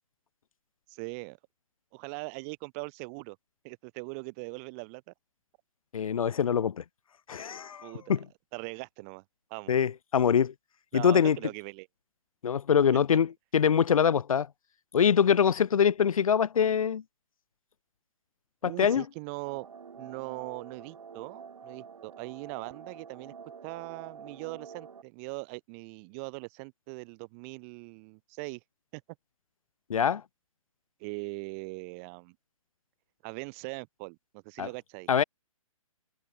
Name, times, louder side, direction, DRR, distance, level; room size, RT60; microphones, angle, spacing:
voice 1, 0.9-1.4 1.9-3.4 3.6-5.1 7.8-8.1 8.5-9.2 9.5-9.7 10.9-11.9 18.6-19.7 20.0-23.3 23.6-28.6 28.9-29.0 31.0-32.3 33.2-35.1, right 35 dB, 25° right, 3.3 m, -40 dB
voice 2, 5.9-6.8 7.3-8.3 9.7-10.5 10.9-11.4 12.4-14.5 14.9-17.0 18.6-19.0 29.9-30.2 34.6-34.7 35.1-35.2, left 7 dB, 80° left, 0.8 m, -24 dB
sound 1, 19.5-25.0, right 6 dB, 75° right, 7.6 m, -47 dB
hypercardioid pair, 165°, 18 cm